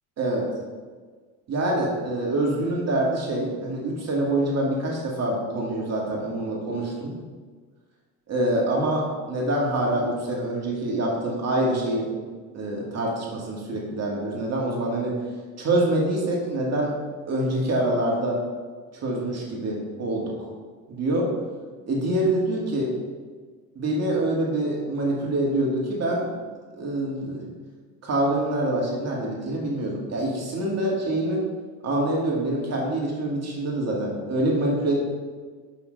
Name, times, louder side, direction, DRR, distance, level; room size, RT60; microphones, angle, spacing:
voice 1, 1.5-7.1 8.3-12.1 12.5-15.1 15.6-16.9 17.3-18.4 18.9-20.3 20.9-21.3 21.9-22.9 23.8-26.4 26.8-27.4 28.0-31.4 31.8-34.9, right 1 dB, 35° right, -2 dB, 2.2 m, -25 dB
6.0 x 5.6 x 5.3 m, 1.5 s
supercardioid pair, 105°, 45 cm